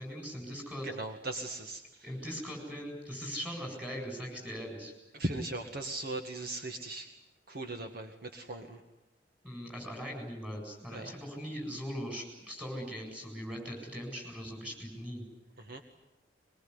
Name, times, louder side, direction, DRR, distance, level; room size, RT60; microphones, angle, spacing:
voice 1, 0.0-0.9 2.0-4.9 9.4-15.2, equal, 5° right, 2 dB, 8.0 m, -40 dB
voice 2, 0.8-2.1 5.1-7.1 7.5-8.8 10.9-11.1 15.6-15.8, right 2 dB, 55° right, 4 dB, 2.0 m, -38 dB
23.5 x 22.5 x 9.8 m, 0.93 s
head